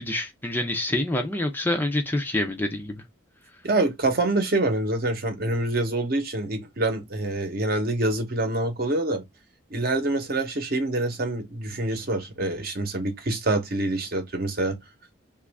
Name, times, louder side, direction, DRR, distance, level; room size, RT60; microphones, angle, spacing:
voice 1, 0.0-3.0, left 1 dB, 10° left, 0.4 m, -26 dB
voice 2, 3.6-9.2 9.7-14.8, right 2 dB, 50° right, 0.8 m, -26 dB
3.0 x 2.4 x 3.3 m
head